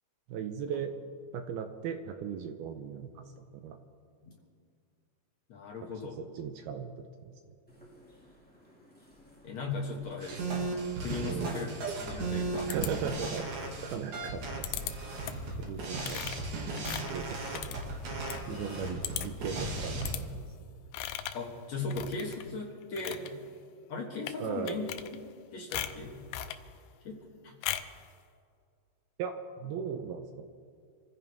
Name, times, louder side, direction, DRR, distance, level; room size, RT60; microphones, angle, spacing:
voice 1, 0.3-0.9 1.3-3.8 6.0-6.9 7.3-7.4 11.2-11.7 12.7-15.3 15.6-16.2 17.1-18.0 18.5-20.5 24.4-24.8 29.2-30.4, right 7 dB, 75° right, 6 dB, 2.4 m, -38 dB
voice 2, 5.5-6.2 9.4-10.7 11.0-12.7 18.5-19.0 21.3-23.4 23.9-25.3 25.5-26.2 27.0-27.6, left 3 dB, 60° left, 0 dB, 1.9 m, -38 dB
sound 1, 7.7-20.1, equal, 5° left, 0.6 m, -48 dB
sound 2, 10.2-20.1, right 3 dB, 50° right, 3.3 m, -36 dB
sound 3, 12.7-13.4 14.6-14.9 15.3-15.5 16.0-18.4 18.7-18.8 19.0-19.5 20.0-20.2 20.9-21.5 21.9-22.5 22.8-23.3 24.2-24.4 24.7-25.4 25.7-26.6 27.6-28.0, left 12 dB, 90° left, 3.0 m, -38 dB
27.0 x 15.0 x 3.5 m, 2.2 s
omnidirectional pair, 5.1 m